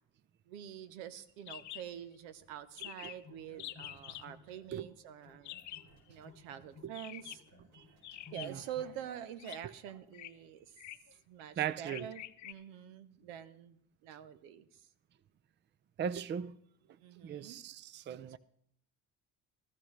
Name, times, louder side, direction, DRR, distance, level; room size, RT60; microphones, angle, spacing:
voice 1, 0.5-5.5 6.1-7.4 8.3-10.8 11.3-14.9 17.0-17.6 18.3-18.4, right 9 dB, 90° right, 0.9 m, -46 dB
sound 1, 1.5-1.8 2.1-2.2 2.4-2.5 2.8-3.2 3.6-4.3 5.4-5.9 6.9-7.5 8.0-8.7 9.4-9.6 10.1-10.3 10.8-11.1 11.9-12.5, left 13 dB, 50° left, 0.7 m, -46 dB
sound 2, 3.1-4.9 5.2-9.0, left 3 dB, 70° right, 5.0 m, -58 dB
voice 2, 11.6-12.1 16.0-16.5 17.2-18.4, right 8 dB, 30° right, 0.5 m, -38 dB
14.5 x 14.0 x 3.2 m
supercardioid pair, 95°, 38 cm